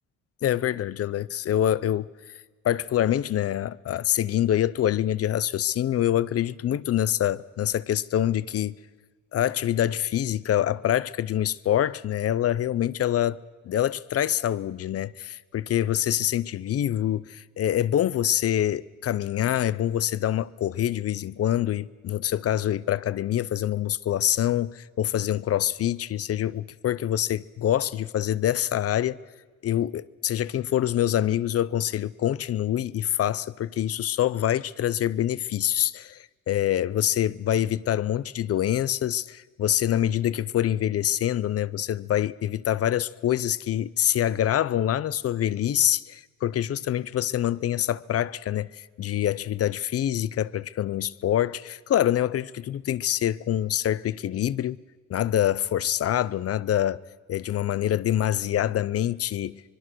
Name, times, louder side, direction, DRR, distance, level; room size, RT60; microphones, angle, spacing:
voice 1, 0.4-2.1 2.6-8.8 9.3-13.4 13.7-29.2 29.6-54.8 55.1-57.0 57.3-59.6, left 11 dB, 55° left, 0.6 m, -25 dB
24.5 x 23.0 x 6.2 m
wide cardioid pair, 170°, 30 cm